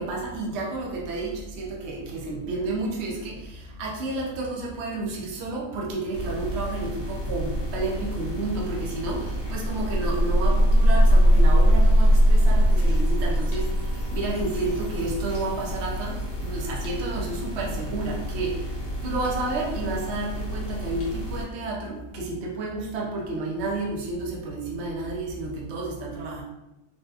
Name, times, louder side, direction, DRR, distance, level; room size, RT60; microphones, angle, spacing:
voice 1, 0.0-13.7 14.1-18.6 19.0-26.4, right 2 dB, 55° right, -2 dB, 0.8 m, -31 dB
sound 1, 6.1-21.4, left 1 dB, 50° left, 0.8 m, -33 dB
sound 2, 9.1-15.5, left 1 dB, 90° right, 1.5 m, -43 dB
sound 3, 9.6-15.9, equal, 75° left, 1.2 m, -20 dB
3.9 x 2.3 x 2.4 m, 0.93 s
omnidirectional pair, 1.7 m